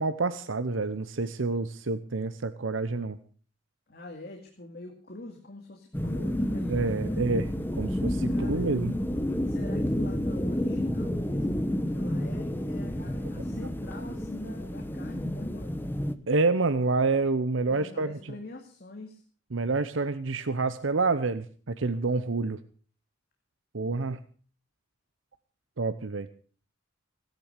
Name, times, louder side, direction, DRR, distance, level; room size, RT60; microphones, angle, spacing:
voice 1, 0.0-3.2 6.7-7.4 7.8-8.9 16.3-18.3 19.5-22.6 23.7-24.2 25.8-26.3, right 3 dB, 85° right, 12 dB, 0.8 m, -28 dB
voice 2, 3.9-7.3 8.3-8.6 9.4-15.9 17.7-19.2, left 2 dB, 50° left, 3 dB, 2.3 m, -44 dB
sound 1, 5.9-16.1, equal, 10° left, 1.0 m, -30 dB
17.0 x 10.5 x 6.6 m, 0.42 s
head